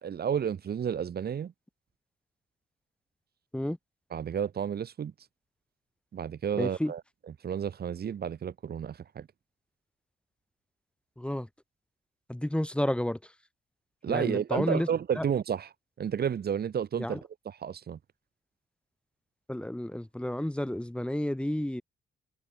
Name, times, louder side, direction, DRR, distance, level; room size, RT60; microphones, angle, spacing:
voice 1, 0.0-1.5 4.1-5.1 6.1-7.0 7.4-9.3 14.0-15.7 16.0-17.2 17.4-18.0, right 8 dB, 55° right, 2.6 m, -31 dB
voice 2, 6.6-6.9 11.2-11.5 12.3-13.2 14.1-14.9 15.2-15.3 17.0-17.2 19.5-21.8, left 1 dB, 5° left, 3.3 m, -31 dB
cardioid pair, 90°, 20 cm